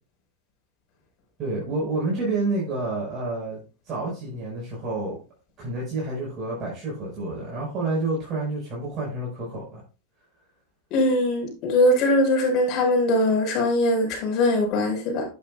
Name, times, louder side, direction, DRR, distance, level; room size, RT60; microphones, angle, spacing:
voice 1, 1.4-3.6 3.8-5.2 5.6-9.8, right 2 dB, 30° right, 5.1 m, -29 dB
voice 2, 10.9-15.3, left 1 dB, 45° left, 4.6 m, -21 dB
9.5 x 8.2 x 2.4 m
supercardioid pair, 130°, 0 cm